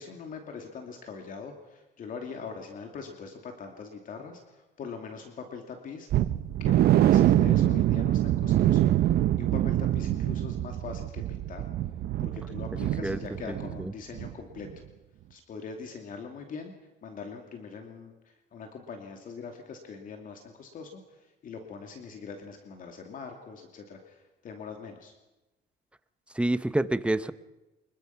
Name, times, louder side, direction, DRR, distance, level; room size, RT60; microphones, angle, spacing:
voice 1, 0.0-6.1 6.6-8.9 9.4-11.7 12.2-14.7 15.3-16.7 17.0-25.1, left 5 dB, 55° left, 4 dB, 2.7 m, -42 dB
sound 1, 6.1-13.9 14.1-14.3 14.7-14.8, right 12 dB, 70° right, 1.0 m, -24 dB
voice 2, 13.5-13.9 26.3-27.3, right 1 dB, 5° right, 13 dB, 0.9 m, -28 dB
25.5 x 21.5 x 5.9 m, 1.0 s
cardioid pair, 110°, 17 cm